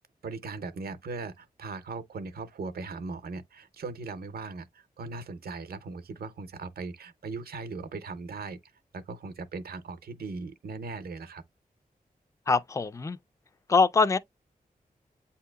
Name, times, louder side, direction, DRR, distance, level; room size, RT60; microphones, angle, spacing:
voice 1, 0.2-8.6 8.9-11.4, right 3 dB, 85° right, 0.6 m, -39 dB
voice 2, 12.5-13.2 13.7-14.2, left 4 dB, 20° left, 0.3 m, -23 dB
8.1 x 2.8 x 2.2 m
wide cardioid pair, 75°, 15 cm